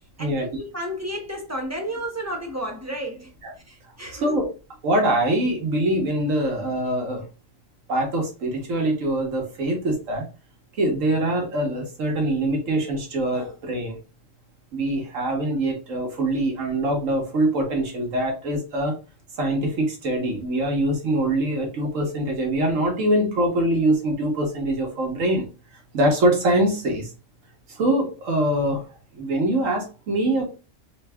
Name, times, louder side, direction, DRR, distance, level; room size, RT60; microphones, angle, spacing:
voice 1, 0.2-3.3 3.7-4.3 9.7-9.8, equal, 15° right, 0.7 m, -32 dB
voice 2, 4.1-4.5 4.8-7.2 7.9-10.2 10.8-14.0 14.7-19.0 19.4-25.5 25.9-27.1 27.7-28.9 29.1-30.5, right 1 dB, 90° right, 1.5 m, -23 dB
3.8 x 2.2 x 3.4 m
omnidirectional pair, 1.3 m